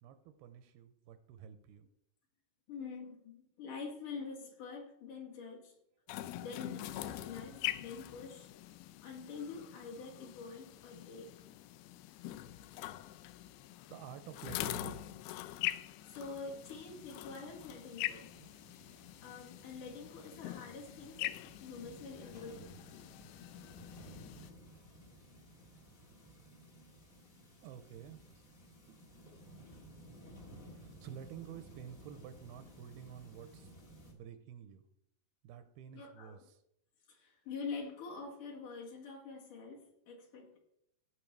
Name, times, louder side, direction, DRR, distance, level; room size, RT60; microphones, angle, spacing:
voice 1, 0.0-1.9 13.0-13.3 13.8-15.0 24.7-24.8 27.6-28.2 28.9-29.4 30.7-33.8 34.1-34.8 35.4-36.6, right 9 dB, 85° right, 10 dB, 2.5 m, -50 dB
voice 2, 2.7-5.7 6.3-8.5 9.0-11.3 16.0-18.3 19.2-22.7 35.9-36.4 37.1-40.6, left 4 dB, 60° left, -1 dB, 3.0 m, -46 dB
sound 1, 6.1-24.5, left 15 dB, 80° left, 2.4 m, -44 dB
sound 2, 16.1-34.1, equal, 40° left, 1.2 m, -56 dB
16.5 x 6.0 x 4.6 m, 0.77 s
omnidirectional pair, 4.6 m